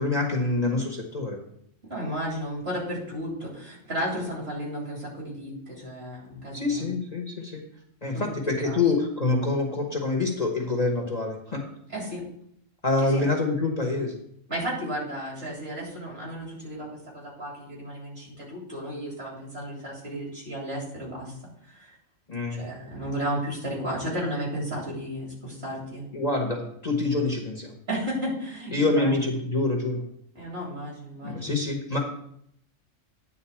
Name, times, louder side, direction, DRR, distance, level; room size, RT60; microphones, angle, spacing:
voice 1, 0.0-1.4 6.5-7.6 8.0-11.6 12.8-14.1 22.3-22.6 26.1-27.7 28.7-30.0 31.2-32.0, left 3 dB, 35° left, 1 dB, 1.2 m, -26 dB
voice 2, 1.8-6.8 8.1-8.8 11.9-12.2 13.0-13.2 14.5-21.3 21.7-21.9 22.5-26.0 27.9-29.1 30.3-31.5, equal, 50° right, -3 dB, 3.4 m, -33 dB
9.7 x 3.9 x 7.1 m, 0.71 s
omnidirectional pair, 1.3 m